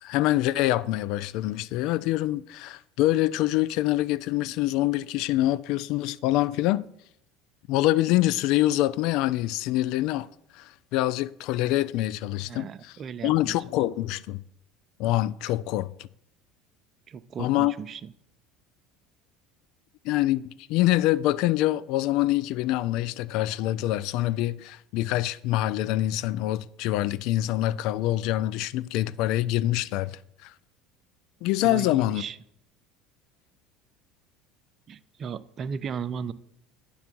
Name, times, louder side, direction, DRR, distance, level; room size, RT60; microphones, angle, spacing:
voice 1, 0.0-6.9 7.7-10.3 10.5-13.0 13.2-14.4 15.0-16.1 17.4-17.7 20.0-30.5 31.4-32.2, left 15 dB, 65° left, 0.3 m, -25 dB
voice 2, 12.4-13.6 17.1-18.1 31.6-32.4 34.9-36.3, right 6 dB, 40° right, 0.5 m, -36 dB
9.7 x 3.5 x 6.0 m
hypercardioid pair, 75°, 0 cm